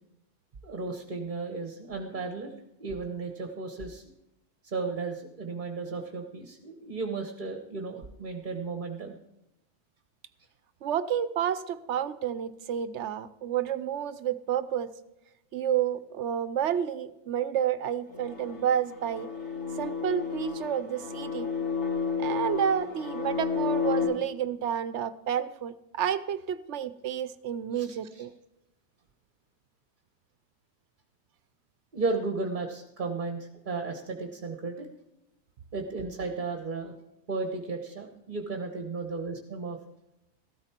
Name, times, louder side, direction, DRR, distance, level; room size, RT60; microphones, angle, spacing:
voice 1, 0.6-2.5 2.8-4.0 4.6-9.1 27.7-28.3 31.9-34.9 35.7-36.9 37.3-39.8, right 3 dB, 45° right, 5 dB, 1.3 m, -34 dB
voice 2, 10.8-14.9 15.5-19.3 19.8-21.5 22.2-28.3, right 9 dB, 85° right, 14 dB, 1.0 m, -30 dB
sound 1, 18.1-24.0, left 6 dB, 85° left, 3.5 m, -31 dB
14.5 x 13.0 x 4.4 m, 0.88 s
omnidirectional pair, 1.2 m